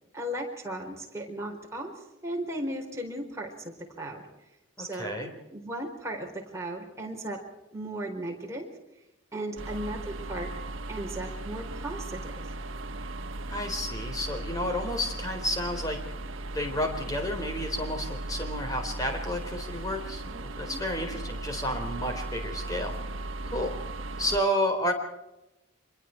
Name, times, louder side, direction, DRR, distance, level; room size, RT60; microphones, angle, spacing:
voice 1, 0.1-4.3 4.8-7.4 7.7-8.7 9.3-10.5 10.9-12.5 20.7-21.3, right 1 dB, 15° right, 0 dB, 4.3 m, -36 dB
voice 2, 4.8-5.3 13.5-16.0 16.5-22.9 23.5-23.8 24.2-24.9, equal, 15° left, 4 dB, 3.9 m, -31 dB
sound 1, 9.6-24.4, right 2 dB, 75° right, 1.3 m, -37 dB
26.0 x 22.0 x 4.6 m, 0.95 s
head